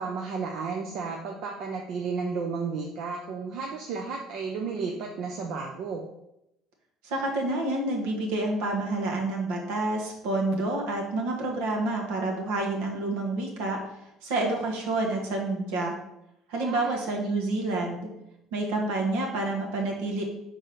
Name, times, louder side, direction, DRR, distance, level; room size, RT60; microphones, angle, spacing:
voice 1, 0.0-6.0 16.5-17.3, right 5 dB, 65° right, 1 dB, 0.8 m, -33 dB
voice 2, 7.0-13.8 14.2-15.9 16.5-18.1 18.5-20.2, right 2 dB, 80° right, 0 dB, 1.6 m, -28 dB
4.9 x 3.9 x 5.8 m, 0.83 s
supercardioid pair, 90°, 0 cm